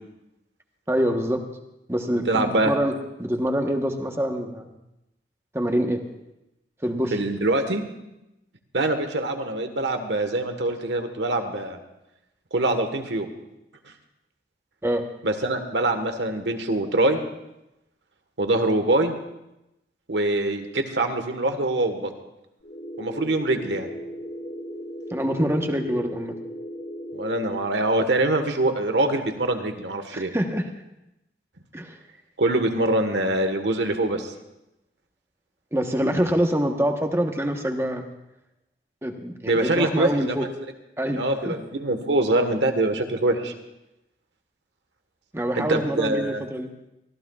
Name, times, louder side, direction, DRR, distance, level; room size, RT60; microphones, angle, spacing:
voice 1, 0.9-1.4 1.9-2.9 3.2-4.7 5.5-6.0 6.8-7.2 14.8-15.1 25.1-26.3 30.1-30.7 31.7-32.0 35.7-38.1 39.0-40.5 41.0-41.5 45.3-46.7, equal, 15° right, 4 dB, 1.0 m, -25 dB
voice 2, 2.3-2.7 7.1-7.8 8.7-11.8 12.5-13.3 15.2-17.2 18.4-19.1 20.1-22.1 23.0-23.9 27.1-30.3 32.4-34.3 39.5-40.5 41.1-43.5 45.6-46.4, right 2 dB, 90° right, 6 dB, 1.4 m, -24 dB
sound 1, 22.6-27.6, equal, 80° left, 3.8 m, -36 dB
24.0 x 15.0 x 2.4 m, 0.90 s
head